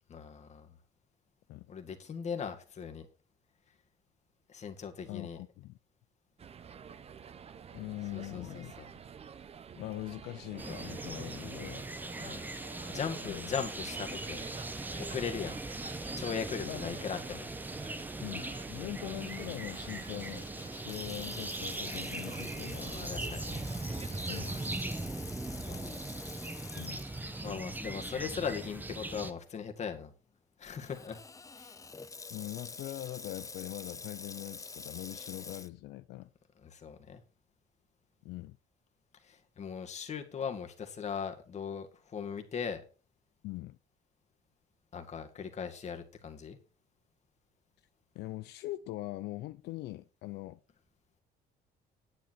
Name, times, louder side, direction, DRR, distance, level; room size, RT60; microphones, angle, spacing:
voice 1, 0.1-0.7 1.7-3.1 4.5-5.4 8.1-8.8 12.2-12.5 12.9-14.4 15.0-15.6 16.2-17.5 18.8-18.9 22.7-23.6 25.6-26.0 27.4-30.1 30.6-31.2 31.6-31.8 36.6-37.2 39.2-42.8 44.9-46.6, left 6 dB, 40° left, 2.0 m, -39 dB
voice 2, 5.1-5.8 7.7-8.7 9.8-11.8 13.2-13.5 16.6-17.1 18.2-20.5 20.8-23.0 24.3-24.6 26.7-27.0 32.3-36.3 38.2-38.6 43.4-43.8 48.1-50.6, left 17 dB, 80° left, 0.6 m, -42 dB
sound 1, 6.4-24.7, right 7 dB, 35° right, 0.8 m, -49 dB
sound 2, 10.6-29.3, right 2 dB, 10° right, 1.0 m, -40 dB
Water tap faucet / Sink (filling or washing), 19.2-27.6 28.1-28.2 28.9-29.2 30.8-35.7, left 4 dB, 20° left, 0.7 m, -48 dB
10.5 x 8.6 x 4.6 m
cardioid pair, 110°, 17 cm